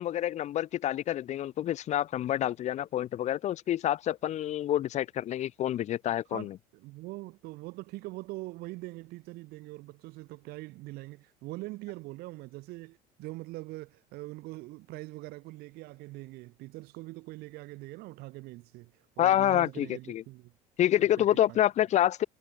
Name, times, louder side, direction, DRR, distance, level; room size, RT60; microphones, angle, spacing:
voice 1, 0.0-6.6 19.2-20.2 20.8-22.3, left 12 dB, 45° left, 0.6 m, -27 dB
voice 2, 6.3-20.5 21.0-21.6, right 21 dB, 70° right, 3.0 m, -43 dB
supercardioid pair, 100°, 16 cm